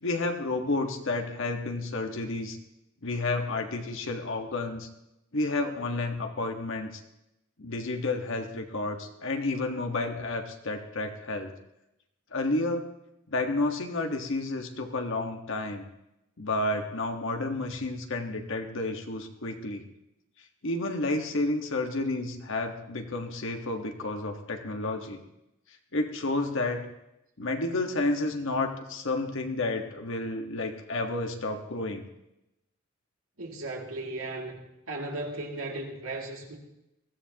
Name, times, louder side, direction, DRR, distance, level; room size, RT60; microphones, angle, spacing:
voice 1, 0.0-2.6 3.0-4.9 5.3-6.9 7.6-11.5 12.3-12.9 13.3-15.8 16.4-19.8 20.6-25.2 25.9-26.9 27.4-32.1, left 2 dB, 65° left, 4 dB, 1.5 m, -31 dB
voice 2, 33.4-34.6 34.9-36.6, right 2 dB, 80° right, 0 dB, 2.5 m, -36 dB
21.0 x 15.5 x 2.9 m, 0.88 s
head